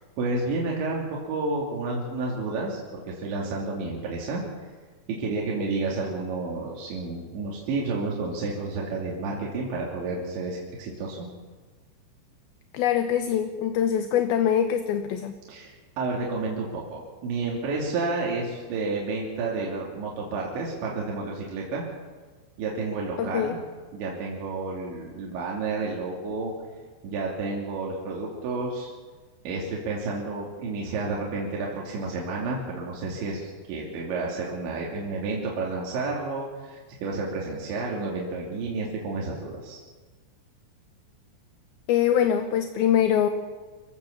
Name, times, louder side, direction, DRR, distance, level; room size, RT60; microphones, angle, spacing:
voice 1, 0.2-4.4 5.1-11.3 15.5-21.8 22.6-23.6 23.9-26.5 27.0-28.9 29.4-39.8, right 3 dB, 85° right, -3 dB, 5.1 m, -30 dB
voice 2, 12.7-15.3 23.2-23.6 41.9-43.3, left 9 dB, 70° left, 7 dB, 2.5 m, -23 dB
27.0 x 16.0 x 7.1 m, 1.4 s
omnidirectional pair, 5.1 m